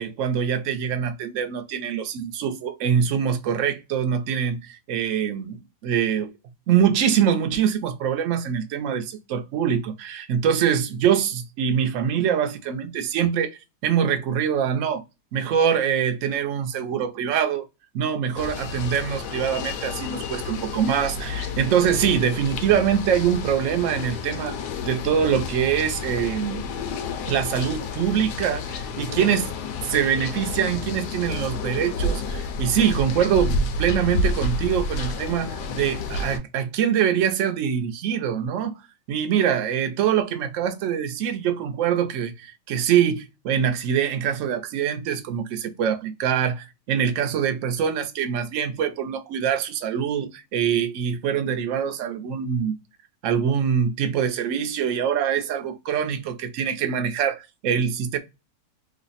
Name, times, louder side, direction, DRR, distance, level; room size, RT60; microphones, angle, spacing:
voice 1, 0.0-6.3 6.7-15.0 15.3-17.7 17.9-24.6 24.9-26.6 27.3-29.5 29.8-38.7 39.1-52.8 53.2-58.2, right 8 dB, 65° right, 0.8 m, -24 dB
sound 1, 18.4-36.4, left 3 dB, 75° left, 1.1 m, -30 dB
3.1 x 2.0 x 3.9 m
omnidirectional pair, 1.8 m